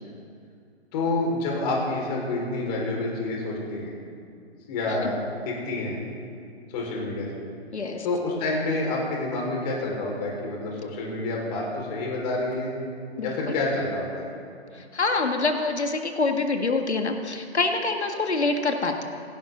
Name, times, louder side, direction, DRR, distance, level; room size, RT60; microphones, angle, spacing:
voice 1, 0.9-3.9 4.7-5.2 5.4-6.0 6.7-7.3 8.0-12.7 13.2-14.3, left 2 dB, 40° left, -2 dB, 5.1 m, -28 dB
voice 2, 7.7-8.1 13.2-13.5 14.7-19.0, left 3 dB, 85° left, 4 dB, 2.0 m, -26 dB
28.5 x 12.0 x 4.0 m, 2.4 s
figure-of-eight pair, 135°, 33 cm